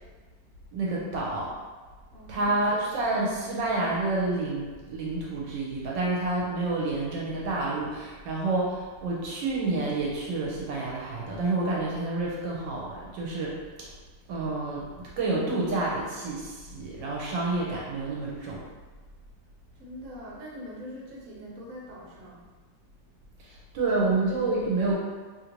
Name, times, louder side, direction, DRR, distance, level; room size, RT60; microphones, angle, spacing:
voice 1, 0.7-1.5 2.3-13.5 14.3-14.9 15.2-18.6 23.4-24.9, right 2 dB, 80° right, -4 dB, 1.2 m, -29 dB
voice 2, 2.1-3.1 19.7-22.5, equal, 60° right, -4 dB, 1.1 m, -43 dB
3.1 x 2.5 x 2.9 m, 1.4 s
omnidirectional pair, 2.0 m